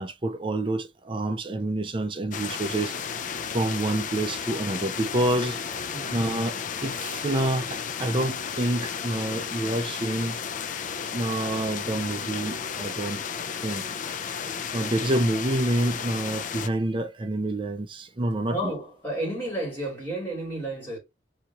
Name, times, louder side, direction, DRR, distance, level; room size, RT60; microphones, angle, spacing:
voice 1, 0.0-5.6 6.1-10.4 11.1-13.2 13.6-13.9 14.7-18.7, right 1 dB, 30° right, 0.5 m, -28 dB
sound 1, 2.3-16.7, left 7 dB, 45° left, 0.4 m, -33 dB
voice 2, 18.5-21.0, right 1 dB, 10° left, 2.8 m, -32 dB
5.0 x 2.8 x 2.9 m
head